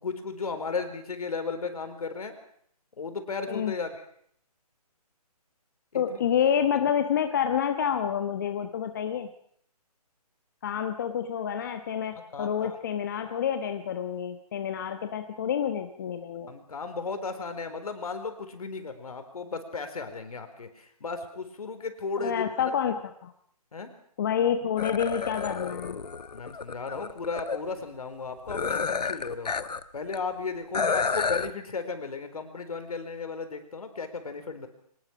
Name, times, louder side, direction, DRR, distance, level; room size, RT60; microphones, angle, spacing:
voice 1, 0.0-2.3 3.0-3.9 5.9-6.2 12.3-12.8 16.5-22.7 23.7-23.9 26.3-29.5 29.9-34.7, left 4 dB, 65° left, 8 dB, 4.4 m, -35 dB
voice 2, 5.9-9.3 10.6-16.5 22.2-23.3 24.2-26.0 30.8-30.9, left 8 dB, 30° left, 7 dB, 1.1 m, -28 dB
sound 1, 24.8-27.6 28.5-29.8 30.1-30.2 30.7-31.5, left 5 dB, 80° left, 1.3 m, -30 dB
24.0 x 20.0 x 6.3 m, 0.66 s
hypercardioid pair, 165°, 20 cm